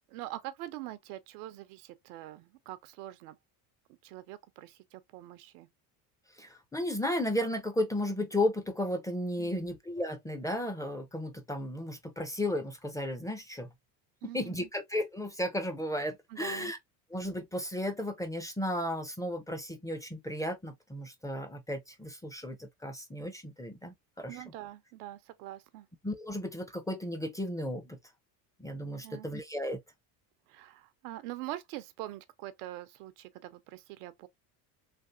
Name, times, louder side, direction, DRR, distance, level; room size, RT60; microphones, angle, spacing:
voice 1, 0.1-3.4 4.0-5.7 9.4-9.7 14.2-14.7 16.3-16.7 24.3-25.9 29.0-29.3 30.5-34.3, right 15 dB, 90° right, 0.7 m, -44 dB
voice 2, 6.4-13.7 14.3-16.8 17.1-24.4 26.0-28.0 28.6-29.8, left 1 dB, 10° left, 0.5 m, -34 dB
3.4 x 2.3 x 2.5 m
supercardioid pair, 105°, 44 cm